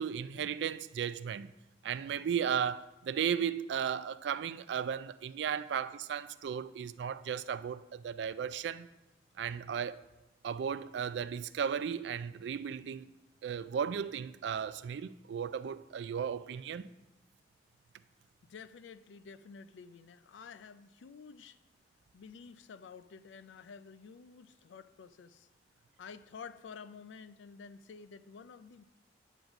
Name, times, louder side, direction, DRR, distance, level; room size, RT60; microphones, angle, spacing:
voice 1, 0.0-1.5 1.8-8.9 9.4-10.0 10.4-13.1 13.4-16.9, right 7 dB, 65° right, 0.3 m, -35 dB
voice 2, 18.5-21.6 22.1-25.5 26.0-28.8, left 5 dB, 80° left, 0.4 m, -50 dB
9.1 x 4.0 x 5.8 m
head